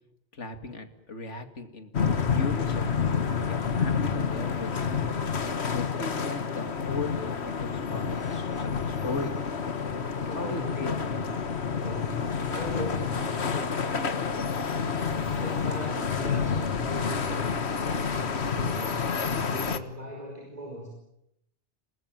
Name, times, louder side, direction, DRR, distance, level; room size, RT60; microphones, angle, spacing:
voice 1, 0.3-1.9 2.3-3.1 3.4-4.9 5.4-9.3 10.3-11.0, left 3 dB, 85° left, 7 dB, 2.7 m, -37 dB
sound 1, 1.9-19.8, left 6 dB, 65° left, 1.7 m, -29 dB
voice 2, 10.2-11.3 11.7-14.0 15.3-20.9, equal, 35° right, 2 dB, 5.1 m, -39 dB
27.5 x 20.5 x 9.0 m, 0.83 s
omnidirectional pair, 1.2 m